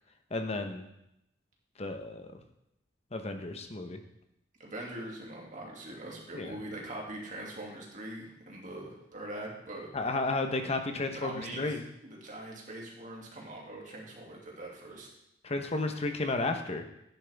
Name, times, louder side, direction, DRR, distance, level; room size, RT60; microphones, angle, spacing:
voice 1, 0.3-0.9 1.8-2.3 3.1-4.0 6.3-6.6 9.9-11.8 15.4-16.8, left 2 dB, 35° left, 6 dB, 0.9 m, -32 dB
voice 2, 4.6-9.9 11.1-15.1, right 1 dB, 45° right, -2 dB, 2.4 m, -42 dB
10.0 x 10.0 x 3.5 m, 0.81 s
head